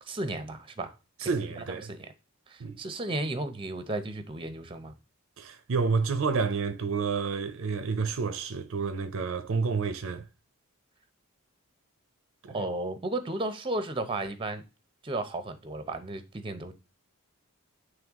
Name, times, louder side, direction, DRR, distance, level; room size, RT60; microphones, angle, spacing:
voice 1, 0.1-0.9 1.2-2.1 2.5-5.0 12.5-14.6 15.0-16.8, right 2 dB, 25° right, 0.6 m, -34 dB
voice 2, 1.2-1.9 2.6-2.8 5.4-10.2 12.4-12.6, right 5 dB, 65° right, 0.5 m, -29 dB
8.9 x 3.3 x 3.5 m
head